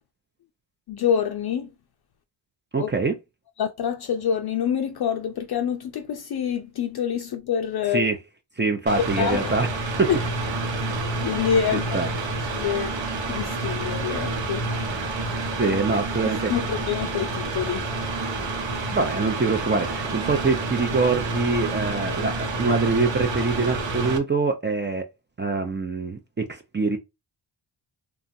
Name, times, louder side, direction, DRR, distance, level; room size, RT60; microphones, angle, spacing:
voice 1, 0.9-1.7 2.8-2.9 3.6-8.0 9.2-9.5 11.2-12.0 12.5-12.9 13.3-14.7 15.6-15.8 16.5-17.9, left 8 dB, 50° left, 0.5 m, -26 dB
voice 2, 2.7-3.1 7.9-8.2 8.6-9.7 10.0-10.1 11.7-12.1 15.6-16.5 18.9-25.1 25.4-27.0, right 4 dB, 25° right, 0.5 m, -24 dB
Mechanical fan, 8.9-24.2, right 3 dB, 65° right, 0.9 m, -29 dB
3.0 x 2.3 x 2.6 m
cardioid pair, 70°, 49 cm